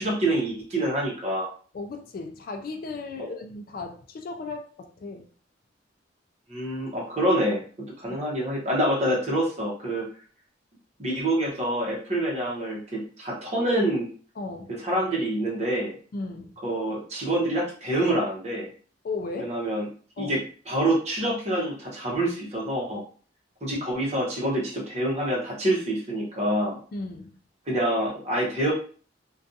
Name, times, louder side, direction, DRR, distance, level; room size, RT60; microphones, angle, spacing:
voice 1, 0.0-1.5 6.5-10.1 11.0-14.1 14.7-15.9 16.6-18.7 19.4-19.9 20.2-20.4 20.7-23.0 23.6-26.8 27.7-28.7, right 1 dB, 35° right, -3 dB, 0.8 m, -26 dB
voice 2, 1.7-5.3 8.1-8.2 14.4-14.8 16.1-16.6 19.0-19.5 20.2-20.4 26.9-27.4, left 3 dB, 50° left, 5 dB, 0.3 m, -36 dB
2.5 x 2.3 x 2.6 m, 0.43 s
head